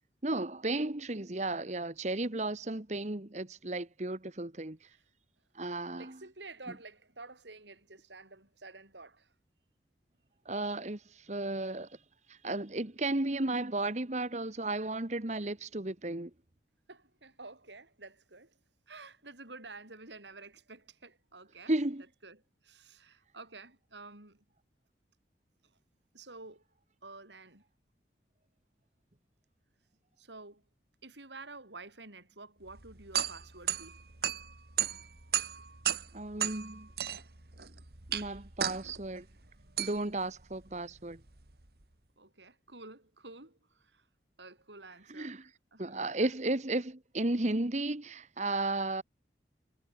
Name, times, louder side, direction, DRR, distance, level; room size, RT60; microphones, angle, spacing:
voice 1, 0.2-4.8 5.5-6.2 10.4-11.9 12.3-16.3 21.7-22.0 36.1-36.9 38.1-39.2 39.8-41.2 45.1-45.5 45.8-49.0, right 2 dB, 40° right, 1.4 m, -34 dB
voice 2, 5.9-9.3 16.9-18.6 18.9-21.7 22.2-24.4 26.1-26.6 27.0-27.6 30.2-30.6 31.0-34.0 42.2-44.1 44.4-46.3, right 3 dB, 85° right, 7.0 m, -50 dB
sound 1, 32.7-41.8, right 10 dB, 60° right, 2.1 m, -36 dB
head